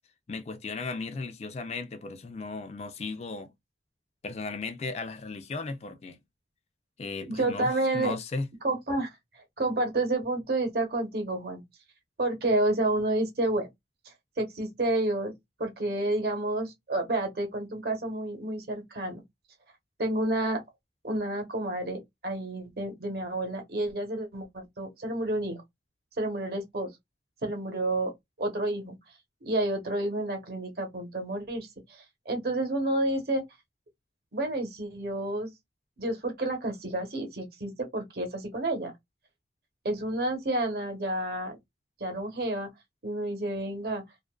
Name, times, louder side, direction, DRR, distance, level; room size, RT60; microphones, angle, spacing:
voice 1, 0.3-3.5 4.2-6.2 7.0-8.5, left 3 dB, 35° left, 0.3 m, -36 dB
voice 2, 7.3-8.1 8.6-9.1 9.6-11.6 12.2-13.7 14.4-15.3 15.6-19.2 20.0-20.6 21.0-25.6 26.2-26.9 27.4-28.1 28.4-29.0 29.4-33.4 34.3-35.5 36.0-38.9 39.8-41.6 42.0-42.7 43.0-44.0, right 1 dB, 55° right, 0.9 m, -30 dB
2.5 x 2.4 x 2.2 m
head